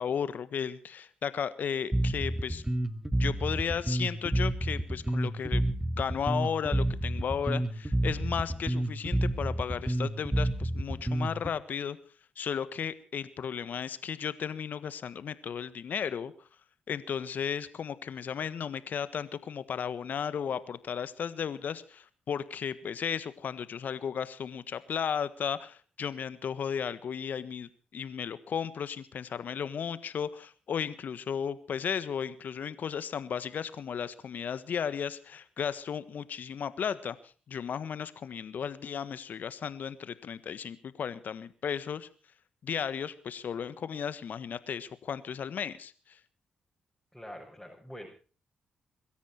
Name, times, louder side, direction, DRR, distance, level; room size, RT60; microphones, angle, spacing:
voice 1, 0.0-2.6 3.2-5.7 6.0-12.0 12.4-16.3 16.9-37.2 37.5-42.1 42.6-46.2, left 7 dB, 60° left, 14 dB, 1.5 m, -34 dB
Bass guitar, 1.9-11.5, right 1 dB, 15° right, 2.3 m, -29 dB
voice 2, 47.1-48.1, equal, 5° left, -2 dB, 6.7 m, -45 dB
23.5 x 13.5 x 4.5 m, 0.38 s
hypercardioid pair, 40°, 3 cm